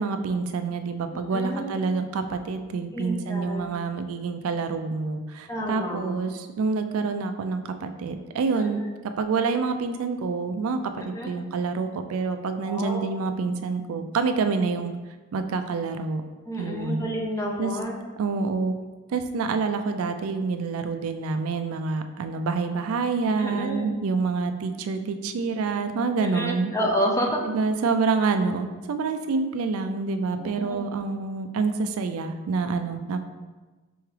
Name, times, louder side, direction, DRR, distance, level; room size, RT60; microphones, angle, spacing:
voice 1, 0.0-8.8 9.2-14.9 15.3-16.2 16.6-17.1 17.6-17.7 18.2-18.7 19.1-26.7 27.4-33.2, right 4 dB, 75° right, 8 dB, 0.3 m, -27 dB
voice 2, 1.1-1.8 2.9-3.8 5.5-6.2 8.5-8.8 11.1-11.3 12.7-13.1 16.5-18.1 23.4-24.0 26.2-27.4 30.4-30.9, equal, 15° left, -1 dB, 0.5 m, -30 dB
4.7 x 3.5 x 3.2 m, 1.3 s
head